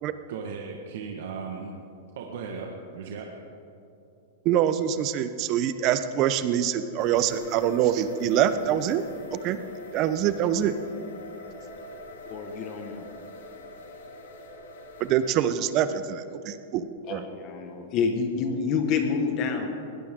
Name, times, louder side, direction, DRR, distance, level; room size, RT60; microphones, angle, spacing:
voice 1, 0.3-1.7 2.1-3.3, right 5 dB, 70° right, 0 dB, 1.7 m, -36 dB
voice 2, 4.4-9.0 9.3-9.6 9.9-10.7 15.0-17.3, right 10 dB, 35° right, 12 dB, 0.9 m, -25 dB
sound 1, 7.0-15.4, left 1 dB, 90° left, 2.5 m, -43 dB
voice 3, 12.3-13.0 17.1-19.7, left 5 dB, 35° left, 5 dB, 1.7 m, -28 dB
21.5 x 17.5 x 3.8 m, 2.7 s
supercardioid pair, 150°, 0 cm